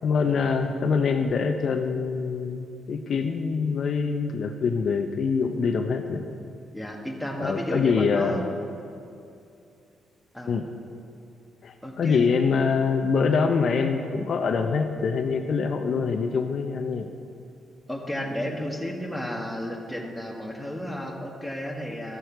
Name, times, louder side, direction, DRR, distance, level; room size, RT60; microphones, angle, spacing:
voice 1, 0.0-6.3 7.4-8.4 10.5-10.7 11.6-17.1, left 5 dB, 60° left, 6 dB, 0.6 m, -25 dB
voice 2, 6.7-8.5 10.3-10.5 11.8-12.3 17.9-22.2, equal, ahead, -1 dB, 1.6 m, -32 dB
14.0 x 6.4 x 4.6 m, 2.5 s
cardioid pair, 80°, 0 cm